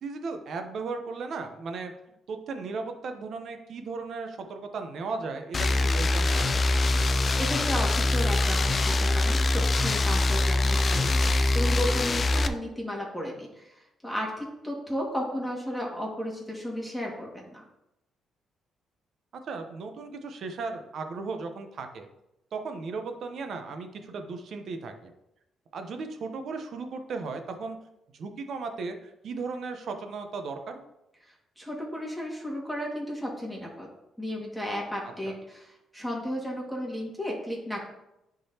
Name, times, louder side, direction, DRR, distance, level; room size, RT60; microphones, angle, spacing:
voice 1, 0.0-1.9 2.3-6.8 12.3-12.5 19.3-22.1 22.5-25.1 25.7-27.8 28.1-30.8 35.3-35.4, right 4 dB, 65° right, 6 dB, 0.9 m, -36 dB
sound 1, 5.5-12.5, left 2 dB, 35° left, 0.4 m, -24 dB
voice 2, 7.4-17.6 31.6-33.9 34.2-37.8, equal, ahead, -3 dB, 2.0 m, -34 dB
10.0 x 3.9 x 2.9 m, 0.87 s
cardioid pair, 90°, 0 cm